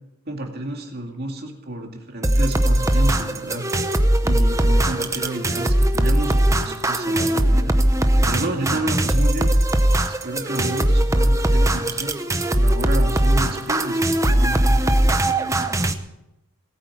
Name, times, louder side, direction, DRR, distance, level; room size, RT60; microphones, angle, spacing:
voice 1, 0.3-3.7 4.2-7.8 8.3-9.5 10.0-12.2 12.5-14.8, right 1 dB, 45° right, 2 dB, 2.4 m, -30 dB
sound 1, 2.2-15.9, right 1 dB, 15° right, 0.8 m, -19 dB
18.5 x 8.8 x 7.2 m, 0.93 s
head